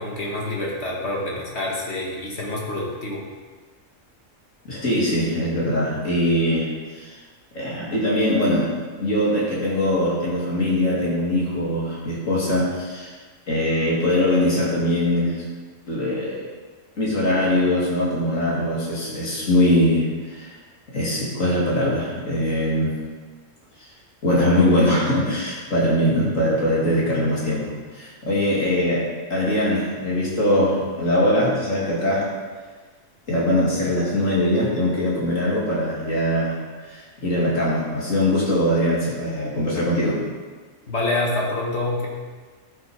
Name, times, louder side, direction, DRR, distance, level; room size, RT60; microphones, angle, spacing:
voice 1, 0.0-3.2 26.2-26.3 40.9-42.1, left 2 dB, 55° left, -3 dB, 1.8 m, -27 dB
voice 2, 4.6-6.7 6.9-7.1 7.5-8.7 9.0-13.1 13.5-15.4 15.9-16.5 17.0-20.6 20.9-22.9 24.2-32.3 33.3-36.6 36.9-40.2, left 1 dB, 80° left, -5 dB, 3.1 m, -22 dB
12.0 x 5.9 x 5.1 m, 1.4 s
omnidirectional pair, 1.3 m